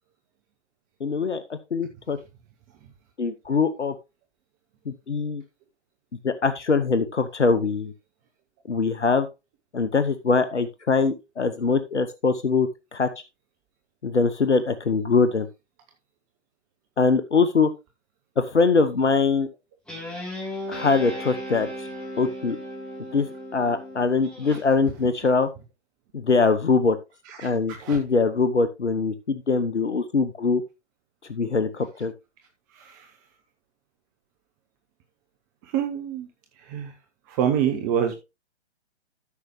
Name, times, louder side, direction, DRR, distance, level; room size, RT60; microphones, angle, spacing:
voice 1, 1.0-2.2 3.2-3.9 4.9-5.4 6.2-7.9 8.7-9.3 9.7-13.1 14.0-15.5 17.0-17.7 18.4-19.5 20.7-21.9 22.2-22.6 23.1-25.5 26.1-27.0 27.4-30.6 31.3-32.1, left 4 dB, 75° left, 11 dB, 1.0 m, -23 dB
Guitar, 19.9-24.6, equal, ahead, 3.2 m, -36 dB
voice 2, 32.7-33.1 35.6-36.3 36.7-36.9 37.3-38.1, right 9 dB, 20° right, 5 dB, 0.8 m, -26 dB
13.0 x 6.4 x 3.1 m, 0.26 s
figure-of-eight pair, 125°, 35 cm